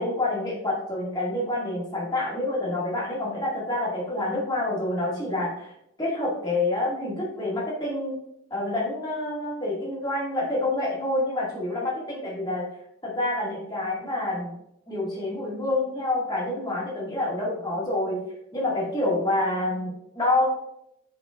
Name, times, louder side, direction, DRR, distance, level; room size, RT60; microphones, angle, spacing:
voice 1, 0.0-5.7 6.0-8.2 8.5-12.6 13.0-14.5 14.9-18.2 18.5-20.5, left 2 dB, 20° left, -5 dB, 2.1 m, -27 dB
9.6 x 5.1 x 2.4 m, 0.77 s
head